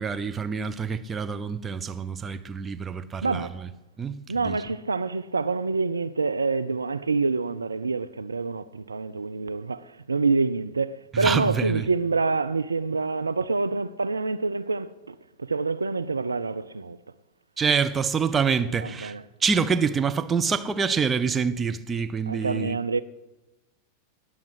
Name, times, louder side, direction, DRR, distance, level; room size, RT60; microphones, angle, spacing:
voice 1, 0.0-3.7 4.0-4.2 4.4-4.6 11.1-11.9 17.6-19.2 19.4-22.8, right 6 dB, 15° right, 0.8 m, -26 dB
voice 2, 3.2-3.6 4.3-17.0 18.8-19.2 22.3-23.0, right 4 dB, 75° right, 0.4 m, -27 dB
19.5 x 7.3 x 8.0 m
figure-of-eight pair, 90°, 0 cm